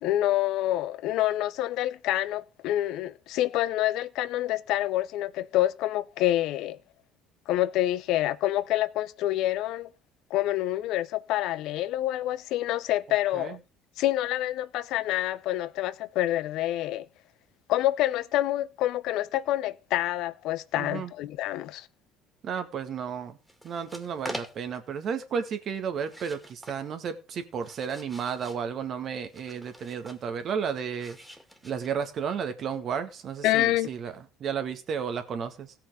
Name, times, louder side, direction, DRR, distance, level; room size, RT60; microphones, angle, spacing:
voice 1, 0.0-6.8 7.5-9.9 10.3-13.6 14.0-17.1 17.7-21.9 33.4-33.9, left 14 dB, 70° left, 0.6 m, -27 dB
voice 2, 20.8-21.1 22.4-23.4 23.6-31.2 31.6-34.1 34.4-35.7, right 7 dB, 50° right, 1.9 m, -33 dB
sound 1, 23.4-24.9 26.0-26.8 27.3-28.7 29.3-30.3 30.9-32.2, equal, 5° right, 2.4 m, -44 dB
16.5 x 5.8 x 5.0 m
hypercardioid pair, 70°, 0 cm